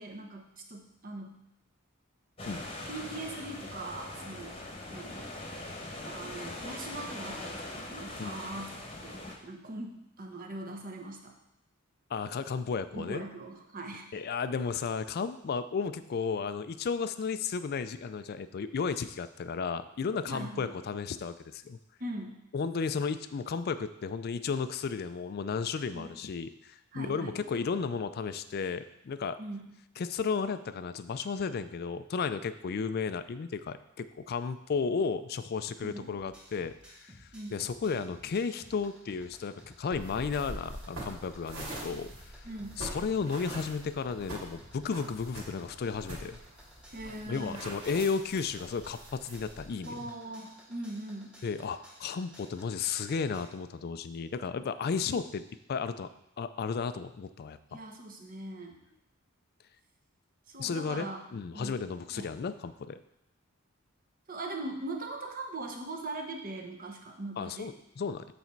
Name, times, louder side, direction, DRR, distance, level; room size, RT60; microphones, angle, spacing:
voice 1, 0.0-1.4 2.8-5.2 6.0-8.7 9.0-11.3 12.9-14.2 20.3-20.7 22.0-22.4 25.9-26.1 26.9-27.4 29.4-29.7 35.8-36.1 37.3-37.6 42.4-42.8 46.9-47.7 49.9-51.4 57.7-58.8 60.5-61.2 61.5-61.8 62.1-62.3 64.3-67.7, right 2 dB, 40° right, 2 dB, 0.9 m, -41 dB
sound 1, 2.4-9.3, left 2 dB, 25° left, 1.0 m, -41 dB
voice 2, 12.1-13.2 14.1-21.8 22.5-29.4 30.0-42.5 42.8-46.4 47.3-50.1 51.4-55.4 55.7-56.1 56.4-57.8 60.6-63.0 67.4-68.2, left 5 dB, 45° left, 12 dB, 0.3 m, -34 dB
sound 2, 36.2-53.5, equal, 5° right, 1.0 m, -56 dB
sound 3, 39.9-49.7, right 1 dB, 75° right, 2.7 m, -44 dB
8.1 x 4.2 x 4.5 m, 0.82 s
head